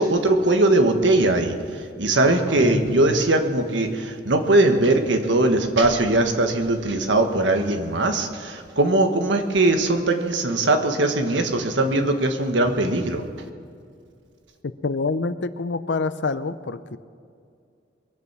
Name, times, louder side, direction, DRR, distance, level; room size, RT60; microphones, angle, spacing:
voice 1, 0.0-13.2, right 2 dB, 80° right, 5 dB, 1.5 m, -20 dB
sound 1, 2.5-3.9, left 1 dB, 5° right, 2.3 m, -31 dB
voice 2, 14.8-17.0, left 3 dB, 75° left, 13 dB, 0.6 m, -26 dB
22.0 x 8.4 x 6.1 m, 2.3 s
head